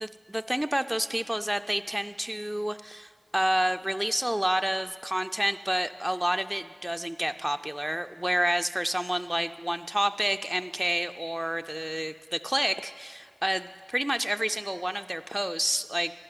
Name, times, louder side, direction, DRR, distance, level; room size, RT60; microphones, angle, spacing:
voice 1, 0.0-16.1, right 1 dB, 15° right, 8 dB, 0.3 m, -29 dB
12.5 x 11.5 x 9.5 m, 2.1 s
wide cardioid pair, 60°, 0 cm